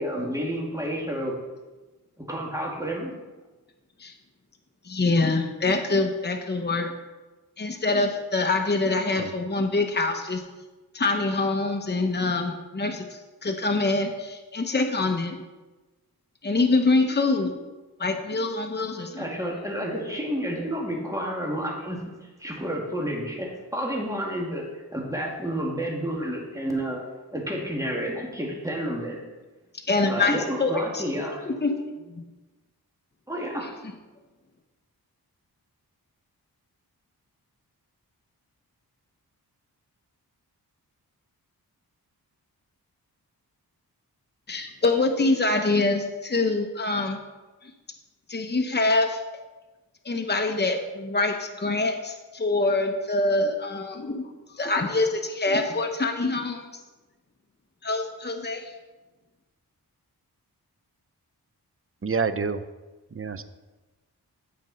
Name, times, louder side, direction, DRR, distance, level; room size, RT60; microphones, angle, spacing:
voice 1, 0.0-1.3 2.2-3.1 19.2-24.6 24.9-27.0 27.3-29.2 30.0-31.5 33.3-33.7, equal, 10° right, -2 dB, 2.6 m, -30 dB
voice 2, 4.8-6.9 7.6-10.4 10.9-15.4 16.4-17.5 18.0-19.3 29.9-31.0 31.5-32.3 44.5-47.2 47.6-47.7 48.3-49.2 50.0-56.7 57.8-58.7, left 3 dB, 25° left, 4 dB, 1.0 m, -25 dB
voice 3, 62.0-62.6 63.1-63.4, right 5 dB, 35° right, 11 dB, 0.7 m, -27 dB
15.5 x 5.2 x 4.4 m, 1.2 s
wide cardioid pair, 65°, 38 cm